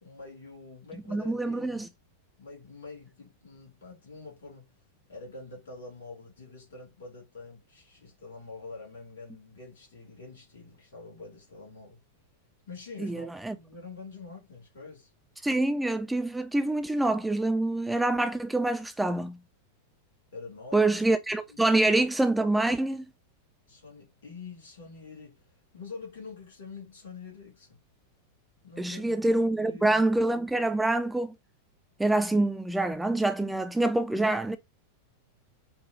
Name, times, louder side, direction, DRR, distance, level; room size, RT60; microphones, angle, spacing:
voice 1, 0.0-1.9 2.4-4.7 5.1-12.0 12.7-13.3 13.5-15.1 20.3-20.8 21.5-21.7 23.7-27.8 28.6-29.2 29.6-30.0, left 4 dB, 65° left, 2.6 m, -46 dB
voice 2, 1.1-1.9 13.0-13.6 15.4-19.4 20.7-23.1 28.8-31.3 32.0-34.6, right 2 dB, 5° right, 0.3 m, -26 dB
5.5 x 2.2 x 3.1 m
figure-of-eight pair, 90°, 0 cm